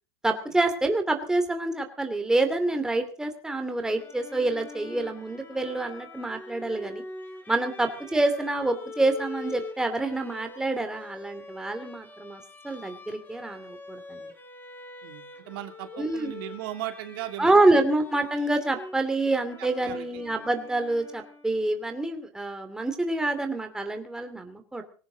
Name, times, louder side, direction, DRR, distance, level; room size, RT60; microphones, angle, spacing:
voice 1, 0.2-7.0 7.5-14.3 15.9-16.3 17.4-24.8, right 2 dB, 5° right, 6 dB, 2.6 m, -27 dB
Bowed string instrument, 3.9-21.7, left 2 dB, 15° left, 5.2 m, -44 dB
voice 2, 15.0-17.8 19.8-20.2, right 13 dB, 65° right, 6 dB, 2.8 m, -37 dB
20.5 x 17.0 x 3.9 m, 0.40 s
supercardioid pair, 130°, 13 cm